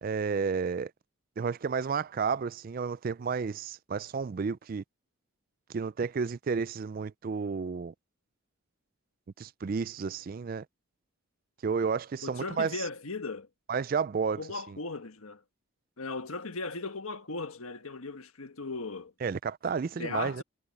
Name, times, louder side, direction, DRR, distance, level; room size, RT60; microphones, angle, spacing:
voice 1, 0.0-0.9 1.4-4.8 5.7-7.9 9.4-10.6 11.6-12.7 13.7-14.8 19.2-20.4, right 5 dB, 40° right, 0.3 m, -31 dB
voice 2, 12.2-13.5 14.4-15.4 16.0-19.1 19.9-20.4, left 3 dB, 85° left, 1.5 m, -37 dB
head